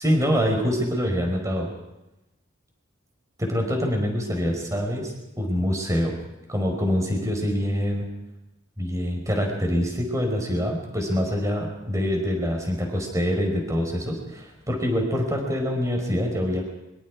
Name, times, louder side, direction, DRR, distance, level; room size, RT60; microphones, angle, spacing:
voice 1, 0.0-1.7 3.4-6.2 6.5-8.1 8.8-16.7, equal, 15° right, 2 dB, 5.2 m, -25 dB
24.0 x 24.0 x 4.9 m, 0.95 s
head